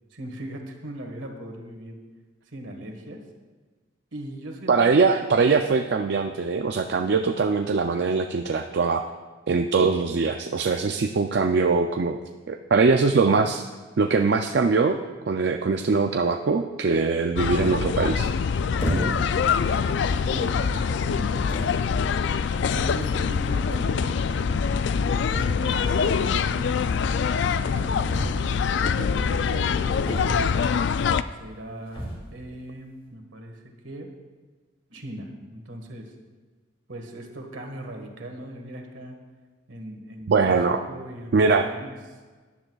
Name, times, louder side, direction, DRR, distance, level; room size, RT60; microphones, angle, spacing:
voice 1, 0.1-2.0 2.5-3.2 4.1-5.3 19.2-22.1 22.7-24.8 25.5-28.4 28.8-30.7 31.3-34.1 34.9-36.1 36.9-39.2 39.7-42.2, right 1 dB, 75° right, 3 dB, 1.6 m, -39 dB
voice 2, 4.7-9.1 9.5-12.2 12.5-13.6 14.0-15.0 15.3-18.3 40.3-40.8 41.3-41.7, right 4 dB, 55° right, 5 dB, 0.4 m, -22 dB
sound 1, 17.4-31.2, left 6 dB, 60° left, 0.3 m, -24 dB
sound 2, 18.8-19.4 20.2-20.3 21.1-21.2 21.5-21.8 23.0-23.1 23.3-23.4 23.6-23.7 25.3-25.8 28.1-28.8 30.0-30.7 31.9-32.3, equal, 25° left, 2.1 m, -30 dB
17.0 x 10.5 x 2.3 m, 1.4 s
head